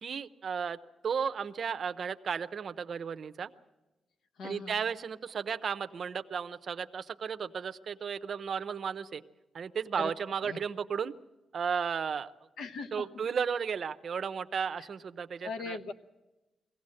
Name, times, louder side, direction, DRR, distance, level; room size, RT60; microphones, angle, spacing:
voice 1, 0.0-0.8 1.0-3.5 4.4-9.2 9.5-11.1 11.5-12.3 12.9-15.8, right 6 dB, 40° right, 10 dB, 0.6 m, -34 dB
voice 2, 4.4-4.8 10.0-10.1 10.4-10.6 12.6-13.1 14.8-14.9 15.4-15.9, left 4 dB, 75° left, 8 dB, 1.1 m, -39 dB
22.5 x 17.0 x 7.6 m, 1.1 s
wide cardioid pair, 175°, 0 cm